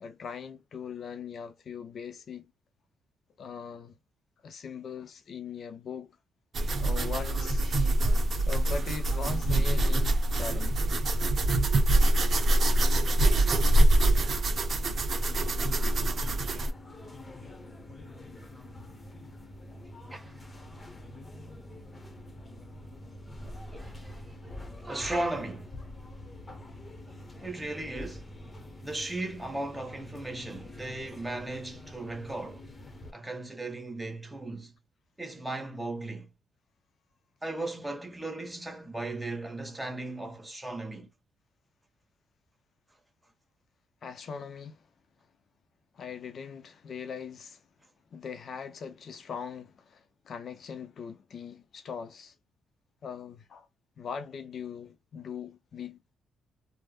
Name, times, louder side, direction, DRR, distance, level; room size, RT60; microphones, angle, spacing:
voice 1, 0.0-2.5 3.4-4.0 4.4-6.1 6.8-7.8 8.5-10.8 44.0-44.8 45.9-47.6 48.1-52.3 53.0-53.7 54.0-56.0, left 6 dB, 55° left, 0.5 m, -40 dB
sound 1, 6.5-16.7, right 1 dB, 45° right, 0.8 m, -24 dB
sound 2, 15.1-33.1, left 1 dB, 25° left, 0.9 m, -46 dB
voice 2, 23.7-24.2 24.4-24.5 24.8-25.8 27.4-28.3 28.8-32.7 33.1-34.7 35.2-36.3 37.4-41.1, right 2 dB, 10° right, 1.0 m, -36 dB
3.3 x 2.0 x 2.3 m
cardioid pair, 90°, 0 cm